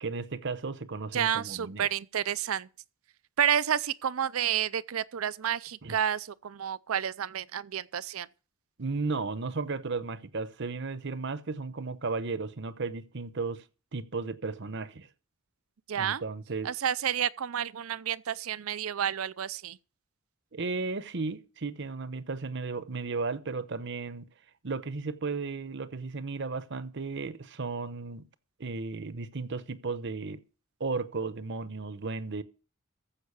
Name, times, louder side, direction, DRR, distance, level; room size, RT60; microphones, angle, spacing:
voice 1, 0.0-1.9 5.8-6.0 8.8-13.6 13.9-15.1 16.0-16.7 20.5-24.3 24.6-28.3 28.6-30.4 30.8-32.4, right 4 dB, 60° right, 0.9 m, -34 dB
voice 2, 1.1-2.7 3.4-8.3 15.9-16.2 16.6-19.8, right 9 dB, 80° right, 0.5 m, -30 dB
15.0 x 5.7 x 7.0 m
head